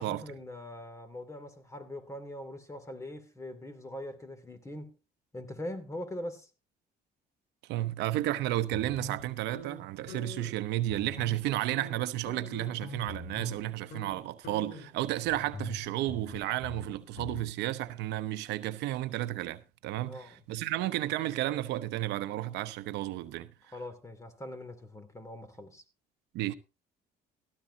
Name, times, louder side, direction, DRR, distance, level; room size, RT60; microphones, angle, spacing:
voice 1, 0.0-5.0 5.3-6.5 20.1-20.4 23.7-25.8, left 1 dB, 15° left, 2.7 m, -42 dB
voice 2, 7.7-23.5 26.3-26.5, right 15 dB, 90° right, 0.9 m, -32 dB
sound 1, 8.7-10.6 10.8-11.5 11.7-13.6 13.9-14.1 14.4-17.4, left 2 dB, 70° left, 5.0 m, -44 dB
17.0 x 13.5 x 2.8 m
cardioid pair, 110°, 17 cm